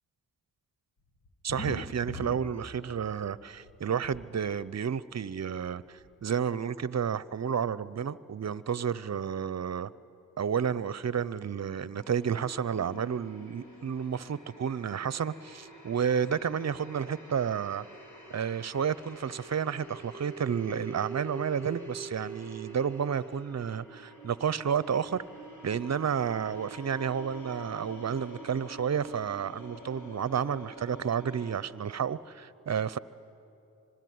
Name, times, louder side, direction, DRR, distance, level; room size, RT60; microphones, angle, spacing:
sound 1, 1.2-3.2 3.5-4.2 5.2-5.3 5.7-5.8 6.0-6.1, left 2 dB, 75° left, 2.2 m, -40 dB
voice 1, 1.4-9.9 10.4-17.9 18.3-25.2 25.6-33.0, right 7 dB, 45° right, 18 dB, 0.8 m, -31 dB
sound 2, 12.0-31.6, right 2 dB, 50° left, 6.7 m, -46 dB
25.5 x 21.0 x 9.5 m, 2.7 s
supercardioid pair, 50°, 38 cm